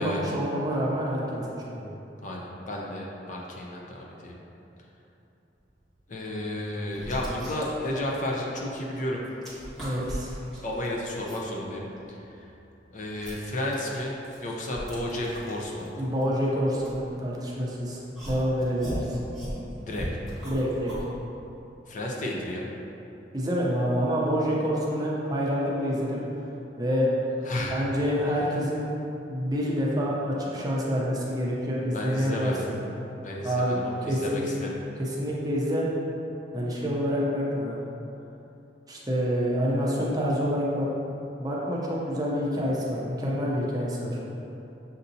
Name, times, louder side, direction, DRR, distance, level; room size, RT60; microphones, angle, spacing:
voice 1, 0.0-1.8 9.8-10.3 16.0-18.0 18.3-19.2 20.4-20.9 23.3-26.2 26.8-27.1 27.5-28.9 29.3-32.7 33.4-33.7 34.1-34.5 35.0-35.9 36.5-37.8 38.9-40.9 41.4-44.2, equal, 20° right, -4 dB, 0.6 m, -27 dB
voice 2, 2.2-4.4 6.1-9.2 10.6-11.8 12.1-12.5 12.9-14.2 14.4-16.0 19.8-20.1 21.9-22.7 27.4-27.8 28.2-28.4 31.8-32.7 33.2-34.8, left 1 dB, 45° left, -2 dB, 0.5 m, -32 dB
sound 1, 5.8-6.0 6.6-8.9 9.2-11.5 12.0-17.6 18.1-21.1, equal, ahead, 1.2 m, -38 dB
6.6 x 2.8 x 2.7 m, 2.9 s
head